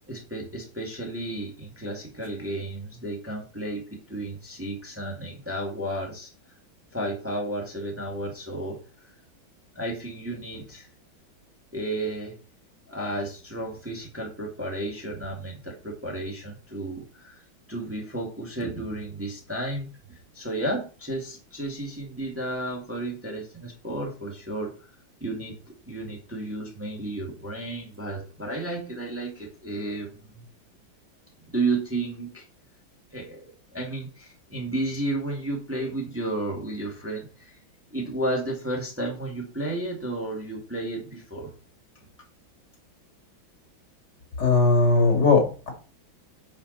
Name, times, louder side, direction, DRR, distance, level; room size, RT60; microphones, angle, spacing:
voice 1, 0.1-6.3 6.9-8.8 9.8-10.9 11.7-12.3 12.9-17.4 17.7-24.9 25.2-30.4 31.5-32.5 33.1-37.6 37.9-41.5, right 2 dB, 5° right, -1 dB, 2.0 m, -32 dB
voice 2, 44.4-45.7, left 3 dB, 55° left, 2 dB, 3.2 m, -19 dB
10.5 x 5.6 x 4.1 m, 0.35 s
omnidirectional pair, 2.2 m